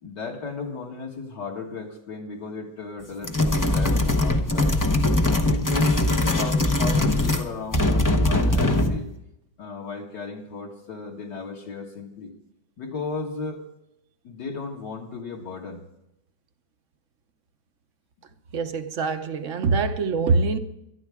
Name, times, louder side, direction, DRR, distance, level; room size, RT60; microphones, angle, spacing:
voice 1, 0.0-4.8 5.3-9.1 9.6-12.3 12.8-13.6 14.2-15.8, left 4 dB, 65° left, 2.5 m, -35 dB
sound 1, 3.2-7.5 7.7-9.0, left 2 dB, 25° left, 0.4 m, -21 dB
voice 2, 18.5-20.6, right 4 dB, 55° right, 0.9 m, -24 dB
23.0 x 11.5 x 3.6 m
omnidirectional pair, 2.0 m